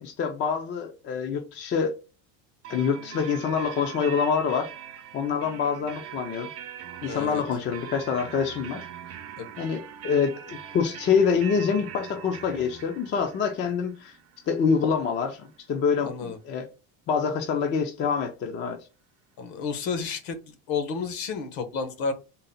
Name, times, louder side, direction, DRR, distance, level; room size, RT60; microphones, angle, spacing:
voice 1, 0.0-1.9 2.7-4.7 5.1-6.5 7.0-8.8 9.6-14.2 14.5-16.7 17.1-18.8, left 6 dB, 30° left, 0.4 m, -26 dB
sound 1, 2.6-16.2, right 9 dB, 35° right, 0.5 m, -42 dB
voice 2, 7.0-7.4 9.4-9.5 16.0-16.4 19.4-22.1, left 5 dB, 55° left, 1.0 m, -31 dB
3.9 x 2.1 x 4.0 m
cardioid pair, 160°, 42 cm